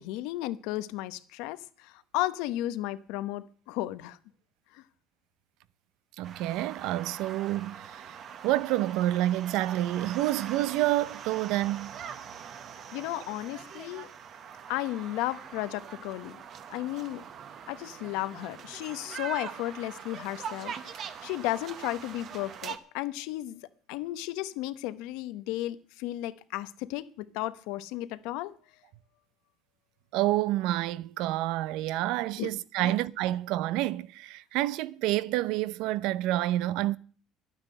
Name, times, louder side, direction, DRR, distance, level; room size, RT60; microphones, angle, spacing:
voice 1, 0.0-4.2 4.7-4.8 12.9-14.1 14.7-16.4 16.7-17.2 17.7-28.5 32.4-32.5 32.8-32.9, left 16 dB, 85° left, 0.9 m, -34 dB
sound 1, 6.2-22.8, right 7 dB, 45° right, 1.1 m, -43 dB
voice 2, 6.2-8.2 8.4-11.9 30.1-37.0, right 15 dB, 75° right, 0.6 m, -28 dB
12.0 x 9.6 x 7.8 m
cardioid pair, 145°, 0 cm